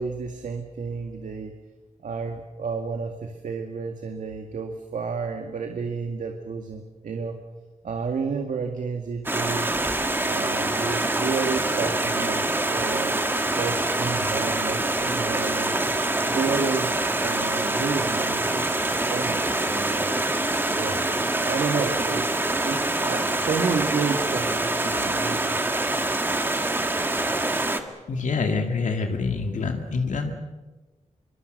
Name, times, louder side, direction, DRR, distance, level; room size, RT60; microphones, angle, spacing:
voice 1, 0.0-1.5 2.0-7.4 7.8-9.7 10.2-13.1 13.5-15.8 16.3-19.4 19.7-20.1 20.7-21.0 21.4-22.3 22.6-25.6, right 5 dB, 90° right, 4 dB, 2.1 m, -31 dB
Stream, 9.3-27.8, right 2 dB, 15° right, 1.6 m, -25 dB
voice 2, 28.1-30.3, left 4 dB, 80° left, 4 dB, 2.3 m, -26 dB
26.0 x 23.5 x 6.7 m, 1.2 s
wide cardioid pair, 175°, 13 cm